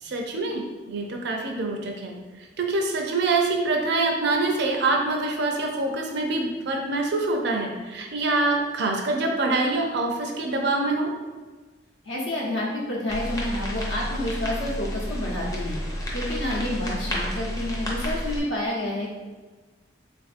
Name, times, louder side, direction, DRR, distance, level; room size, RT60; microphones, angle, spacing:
voice 1, 0.0-2.1 2.6-11.1, right 2 dB, 65° right, 2 dB, 0.5 m, -25 dB
voice 2, 12.0-15.8 16.1-19.1, left 1 dB, 85° left, -3 dB, 0.8 m, -29 dB
sound 1, 13.1-18.4, equal, 20° left, 0.5 m, -30 dB
3.5 x 2.5 x 2.5 m, 1.3 s
head